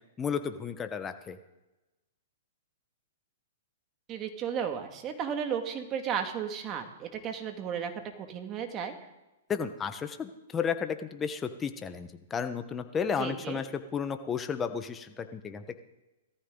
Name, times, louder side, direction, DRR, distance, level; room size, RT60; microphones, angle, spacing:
voice 1, 0.2-1.4 9.5-15.8, left 6 dB, 20° left, 8 dB, 1.3 m, -33 dB
voice 2, 4.1-8.9 13.2-13.6, right 7 dB, 30° right, 5 dB, 2.2 m, -34 dB
18.0 x 14.0 x 4.0 m, 1.0 s
hypercardioid pair, 120°, 0 cm